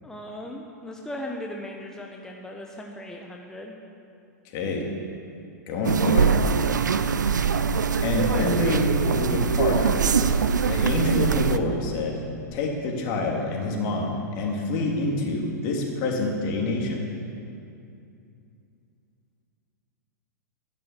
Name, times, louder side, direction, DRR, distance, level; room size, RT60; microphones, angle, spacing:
voice 1, 0.0-3.8, left 1 dB, 5° left, 0 dB, 1.2 m, -38 dB
voice 2, 4.4-4.8 5.7-6.3 8.0-10.0 10.7-12.2 12.5-17.0, left 2 dB, 45° left, 0 dB, 3.2 m, -26 dB
sound 1, 5.8-11.6, right 6 dB, 85° right, 0.6 m, -23 dB
13.5 x 11.0 x 7.5 m, 2.6 s
hypercardioid pair, 105°, 10 cm